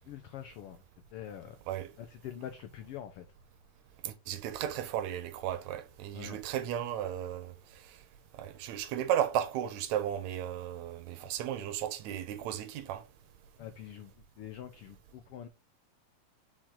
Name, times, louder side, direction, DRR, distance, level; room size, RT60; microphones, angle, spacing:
voice 1, 0.1-0.8 1.1-1.6 2.0-3.3 6.1-6.4 13.6-15.5, left 10 dB, 85° left, 1.2 m, -45 dB
voice 2, 4.0-7.5 8.4-13.0, right 10 dB, 80° right, 2.0 m, -34 dB
5.7 x 4.8 x 3.7 m
omnidirectional pair, 3.3 m